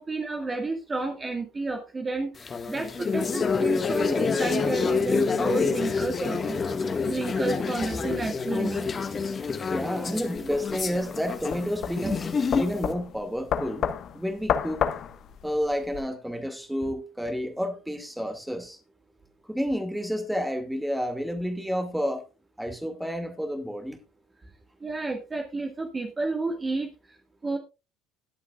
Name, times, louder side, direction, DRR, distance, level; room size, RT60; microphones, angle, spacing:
voice 1, 0.0-6.6 7.0-8.9 12.0-12.2 24.8-27.6, right 3 dB, 25° right, 1.8 m, -31 dB
sound 1, 2.4-12.9, left 5 dB, 35° left, 1.6 m, -28 dB
voice 2, 9.7-12.2 12.5-13.9 14.1-14.9 15.4-18.8 19.5-22.2 22.6-24.0, equal, 5° right, 2.1 m, -30 dB
sound 2, 10.4-16.0, left 8 dB, 50° left, 1.2 m, -31 dB
21.0 x 8.2 x 2.4 m
hypercardioid pair, 65°, 0 cm